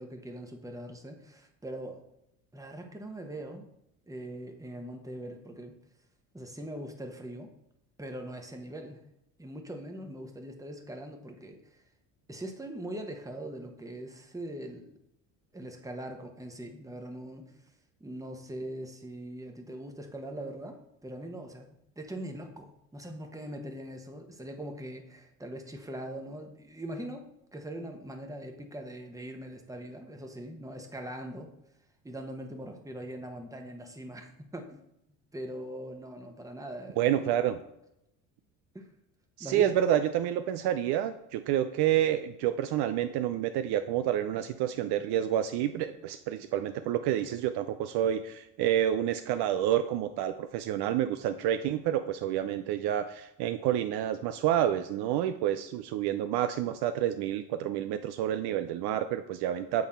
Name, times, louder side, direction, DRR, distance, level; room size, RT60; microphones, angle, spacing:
voice 1, 0.0-2.0 2.5-3.7 4.1-5.7 6.3-7.5 8.0-9.0 9.4-11.8 12.3-14.9 15.5-17.5 18.0-31.5 32.0-34.8 35.3-37.6 38.7-38.9 39.4-39.7, right 1 dB, 5° right, 3 dB, 1.1 m, -41 dB
voice 2, 37.0-37.6 39.4-59.9, right 11 dB, 60° right, 9 dB, 0.5 m, -29 dB
7.8 x 3.5 x 4.2 m, 0.82 s
hypercardioid pair, 75°, 47 cm